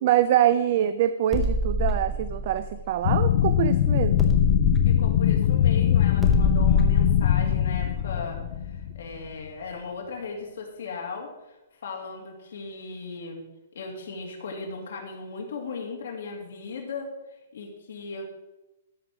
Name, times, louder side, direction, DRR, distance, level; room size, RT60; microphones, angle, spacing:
voice 1, 0.0-4.3, right 11 dB, 40° right, 12 dB, 0.4 m, -24 dB
sound 1, 1.3-3.7 4.2-8.8, equal, 5° left, 0.9 m, -28 dB
sound 2, 3.0-9.2, left 10 dB, 40° left, 0.4 m, -22 dB
voice 2, 4.8-8.4 8.7-11.6 11.8-13.4 13.7-17.1 17.5-18.2, left 4 dB, 60° left, 0 dB, 2.4 m, -37 dB
13.0 x 5.0 x 6.0 m, 1.0 s
hypercardioid pair, 175°, 0 cm